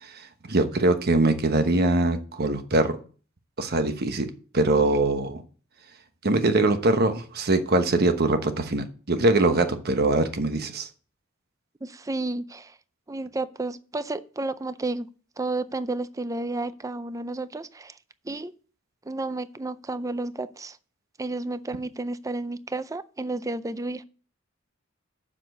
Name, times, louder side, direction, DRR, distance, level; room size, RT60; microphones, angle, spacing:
voice 1, 0.0-3.0 3.6-5.4 6.2-10.9, right 2 dB, 50° right, 9 dB, 1.1 m, -23 dB
voice 2, 11.8-12.8 13.1-15.1 15.4-18.0 18.2-18.5 19.0-20.8 21.2-24.0, right 2 dB, 15° right, 14 dB, 0.5 m, -31 dB
7.4 x 6.3 x 7.9 m, 0.40 s
head